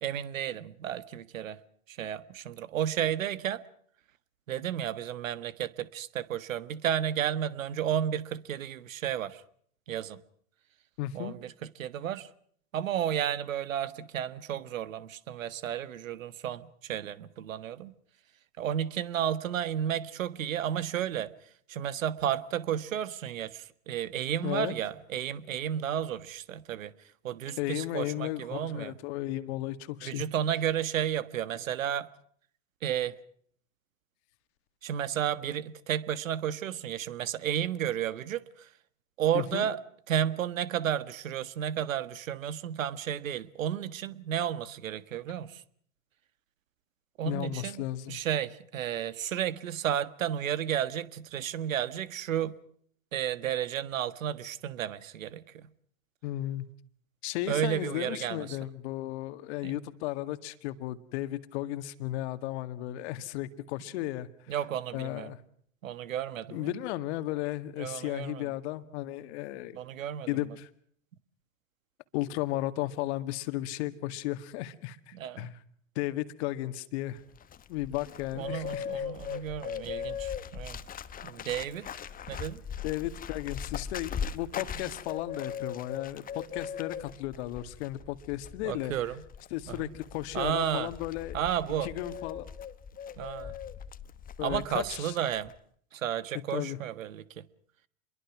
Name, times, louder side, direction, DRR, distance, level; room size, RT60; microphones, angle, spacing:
voice 1, 0.0-1.6 1.9-3.6 4.5-9.4 9.9-10.2 11.1-11.5 11.8-12.3 12.7-17.9 18.6-21.3 21.7-26.9 27.2-28.9 30.0-32.1 32.8-33.1 34.8-38.7 39.2-39.8 40.1-45.6 47.2-47.8 48.1-52.6 53.1-55.7 57.5-58.6 59.6-59.8 64.5-65.3 65.8-66.7 67.8-68.5 69.7-70.4 75.1-75.5 78.4-80.8 81.2-81.9 82.3-82.6 88.6-89.2 89.7-89.8 90.3-90.9 91.3-91.9 93.2-93.5 94.4-95.5 95.9-97.4, right 10 dB, 75° right, 1.6 m, -32 dB
voice 2, 11.0-11.4 24.4-24.7 27.6-30.2 39.3-39.6 47.3-48.2 56.2-56.6 57.2-64.3 64.9-65.4 66.5-69.8 70.3-70.7 72.1-75.6 76.0-77.2 77.7-79.1 82.8-88.9 89.5-91.4 91.8-92.5 94.4-95.2 96.5-96.8, left 15 dB, 55° left, 2.0 m, -34 dB
Bird, 77.2-95.0 95.2-95.6, left 7 dB, 20° left, 1.2 m, -40 dB
27.5 x 22.5 x 6.1 m
hypercardioid pair, 105°, 40 cm